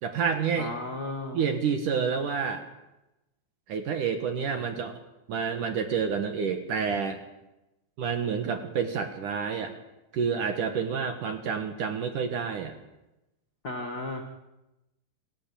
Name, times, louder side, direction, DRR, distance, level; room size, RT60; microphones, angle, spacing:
voice 1, 0.0-0.7 1.3-2.6 3.7-4.9 5.3-7.2 8.0-9.7 10.1-12.8, right 6 dB, 60° right, 6 dB, 2.3 m, -29 dB
voice 2, 0.6-1.4 13.6-14.2, left 2 dB, 75° left, 1 dB, 0.8 m, -34 dB
27.0 x 15.5 x 8.5 m, 0.97 s
omnidirectional pair, 5.5 m